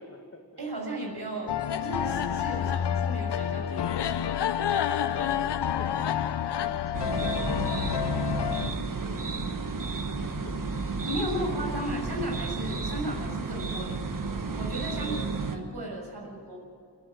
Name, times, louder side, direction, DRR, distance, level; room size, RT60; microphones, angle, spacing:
voice 1, 0.0-0.4 5.0-6.2 6.5-9.9 10.2-11.1 11.4-11.8 14.9-15.3 16.2-16.3, left 2 dB, 35° left, 4 dB, 2.2 m, -48 dB
voice 2, 0.6-4.3 11.0-14.0 14.5-15.2 15.4-16.6, right 1 dB, 75° right, 0 dB, 6.8 m, -35 dB
sound 1, 1.5-8.7, left 9 dB, 85° left, 0.7 m, -28 dB
sound 2, 6.9-15.6, right 4 dB, 50° right, 1.7 m, -32 dB
28.0 x 9.7 x 9.6 m, 2.4 s
wide cardioid pair, 65°, 40 cm